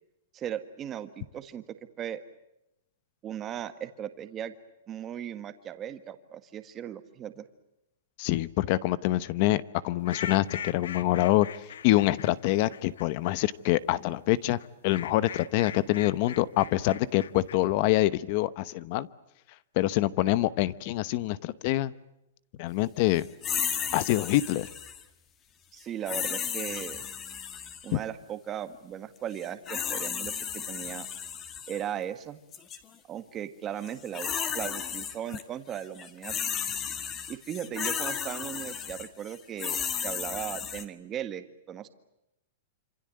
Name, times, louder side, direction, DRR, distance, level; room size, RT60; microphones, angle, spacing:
voice 1, 0.3-1.6 2.0-2.2 3.2-4.5 4.9-7.5 25.7-27.0 27.8-31.1 31.7-32.4 33.1-36.3 37.3-41.9, right 10 dB, 15° right, 10 dB, 1.7 m, -37 dB
voice 2, 8.2-11.5 11.8-14.6 14.8-19.1 19.8-21.9 22.6-23.3 23.9-24.7 27.9-28.0, left 16 dB, 35° left, 17 dB, 0.9 m, -25 dB
sound 1, 10.0-13.4 14.6-17.6, left 8 dB, 85° left, 1.4 m, -41 dB
sound 2, 23.4-25.0 26.1-27.9 29.4-31.8 32.5-32.8 33.8-35.4 35.7-40.8, left 8 dB, 20° left, 1.8 m, -34 dB
27.0 x 27.0 x 7.7 m, 0.86 s
supercardioid pair, 170°, 0 cm